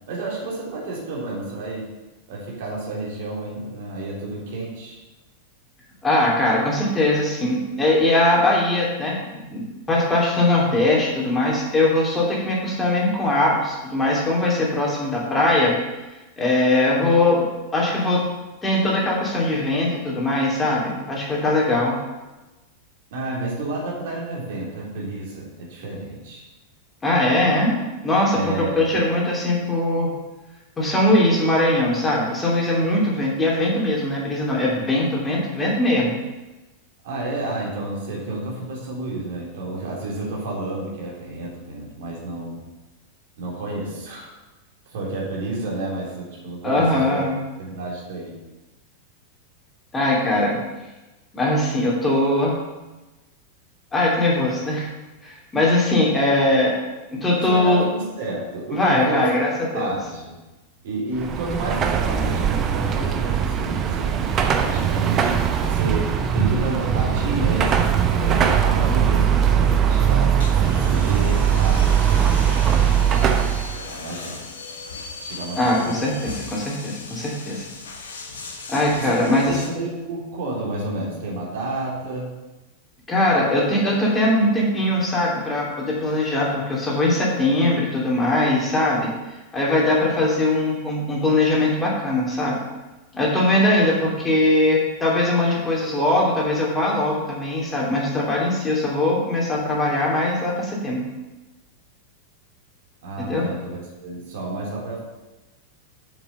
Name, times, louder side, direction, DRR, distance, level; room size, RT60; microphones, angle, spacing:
voice 1, 0.0-1.9 2.3-5.0 23.1-26.5 28.3-28.8 37.0-42.6 43.4-44.3 44.9-47.2 47.6-48.4 57.4-59.3 59.7-60.4 60.8-71.9 72.1-73.3 73.7-74.4 75.2-76.1 79.0-82.3 103.0-105.0, right 2 dB, 55° right, -2 dB, 3.1 m, -30 dB
voice 2, 6.0-15.8 16.4-17.4 17.7-18.2 18.6-22.0 27.0-27.8 28.0-30.1 30.8-36.2 46.6-47.4 49.9-50.6 51.3-52.6 53.9-54.9 55.2-56.8 57.1-57.9 58.7-59.9 75.6-77.6 78.7-79.6 83.1-89.1 89.5-92.6 93.1-101.0 103.2-103.5, left 1 dB, 15° left, -3 dB, 2.8 m, -21 dB
Car passing by / Traffic noise roadway noise / Engine, 61.2-73.8, right 8 dB, 30° right, 0.9 m, -20 dB
sound 1, 70.0-79.7, left 4 dB, 65° left, 1.4 m, -38 dB
7.3 x 7.2 x 6.7 m, 1.1 s
figure-of-eight pair, 90°, 0 cm